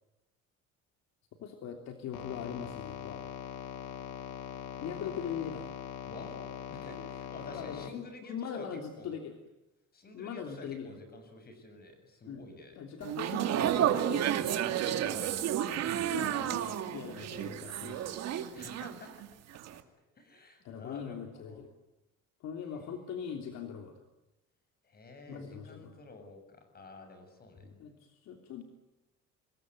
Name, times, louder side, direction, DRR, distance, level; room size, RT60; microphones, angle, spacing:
voice 1, 1.4-3.2 4.8-5.7 7.5-9.3 10.1-10.9 12.3-12.4 12.8-14.3 14.9-15.2 16.1-18.2 20.6-21.7 22.4-24.0 25.3-26.0 27.6-28.6, left 7 dB, 60° left, 4 dB, 3.2 m, -41 dB
sound 1, 2.1-7.9, left 9 dB, 90° left, 2.5 m, -42 dB
voice 2, 6.1-8.7 8.9-9.2 9.9-12.8 14.6-14.8 18.5-19.2 19.7-19.8 20.2-21.7 24.8-27.7, left 2 dB, 30° left, 8 dB, 7.3 m, -50 dB
sound 2, 13.0-19.3 19.6-19.8, right 10 dB, 60° right, 2.5 m, -31 dB
26.5 x 21.0 x 9.5 m, 0.97 s
cardioid pair, 140°, 30 cm